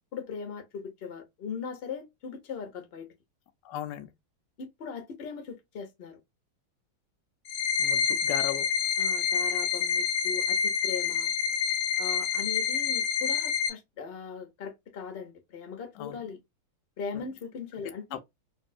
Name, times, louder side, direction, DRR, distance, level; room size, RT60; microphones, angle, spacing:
voice 1, 0.1-3.1 4.6-6.2 9.0-11.3 12.0-16.4 17.0-18.2, left 6 dB, 45° left, 0.7 m, -39 dB
voice 2, 3.6-4.1 7.8-8.7 16.0-16.2 17.1-17.2 18.1-18.2, left 12 dB, 70° left, 1.1 m, -36 dB
sound 1, 7.5-13.7, left 7 dB, 90° left, 1.6 m, -27 dB
3.3 x 2.7 x 2.3 m
omnidirectional pair, 2.4 m